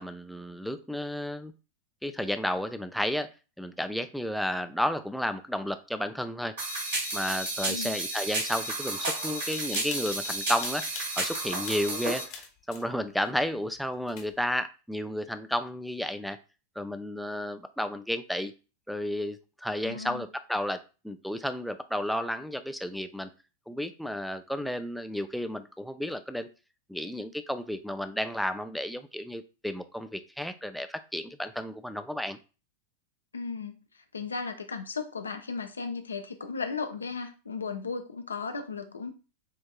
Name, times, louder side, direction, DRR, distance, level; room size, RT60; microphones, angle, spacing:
voice 1, 0.0-1.5 2.0-3.3 3.6-6.5 7.1-10.9 11.2-16.4 16.8-18.5 18.9-20.8 21.0-23.3 23.7-26.5 26.9-32.4, equal, ahead, 9 dB, 0.4 m, -32 dB
sound 1, 6.6-12.2, right 2 dB, 60° right, 2.6 m, -32 dB
voice 2, 7.7-8.0 19.8-20.3 33.3-33.8 34.1-39.1, left 4 dB, 75° left, 7 dB, 0.6 m, -35 dB
sound 2, 9.4-11.4 11.6-12.9 13.2-13.3 13.8-13.9 14.0-14.5, left 6 dB, 45° left, 1.0 m, -43 dB
7.3 x 2.6 x 2.3 m, 0.33 s
figure-of-eight pair, 90°, 0 cm